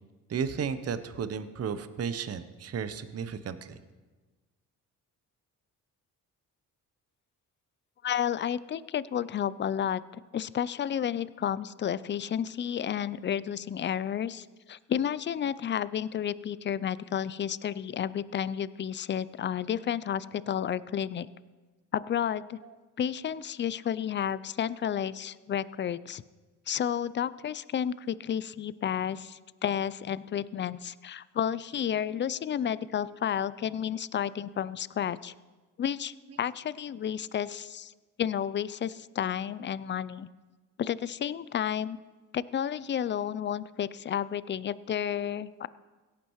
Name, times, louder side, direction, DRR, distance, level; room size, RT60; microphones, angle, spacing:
voice 1, 0.3-3.8 22.6-22.7, right 6 dB, 35° right, 12 dB, 0.8 m, -34 dB
voice 2, 8.0-10.0 10.3-21.3 21.9-22.6 23.0-26.2 26.7-35.3 35.8-37.9 38.2-40.3 40.8-42.0 42.3-45.7, left 9 dB, 30° left, 18 dB, 0.4 m, -31 dB
17.0 x 8.6 x 3.1 m, 1.3 s
hypercardioid pair, 55°, 41 cm